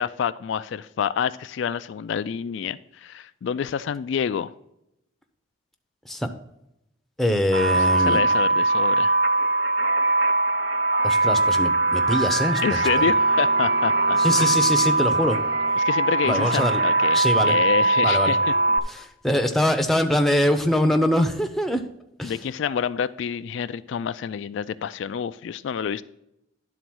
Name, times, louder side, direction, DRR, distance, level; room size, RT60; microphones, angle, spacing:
voice 1, 0.0-4.5 7.8-9.2 12.6-14.6 15.8-18.5 22.2-26.0, left 7 dB, 65° left, 14 dB, 0.3 m, -28 dB
voice 2, 7.2-8.2 11.0-12.6 14.2-15.4 16.2-16.8 17.1-17.5 18.0-18.3 18.9-21.8 22.2-22.3, left 1 dB, ahead, 5 dB, 0.6 m, -23 dB
sound 1, 7.5-18.8, right 2 dB, 70° right, 0.8 m, -21 dB
sound 2, 13.0-15.8, right 2 dB, 50° right, 1.5 m, -39 dB
10.5 x 3.9 x 6.1 m, 0.83 s
head